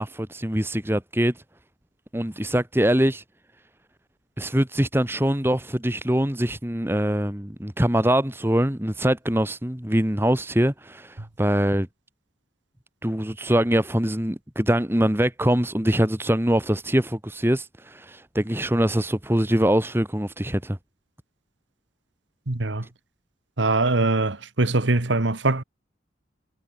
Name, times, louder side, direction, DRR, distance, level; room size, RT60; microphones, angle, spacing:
voice 1, 0.0-1.3 2.1-3.2 4.4-11.9 13.0-20.8, equal, 15° right, 1.6 m, -23 dB
voice 2, 22.5-22.8 23.6-25.6, right 2 dB, 85° right, 1.6 m, -22 dB
head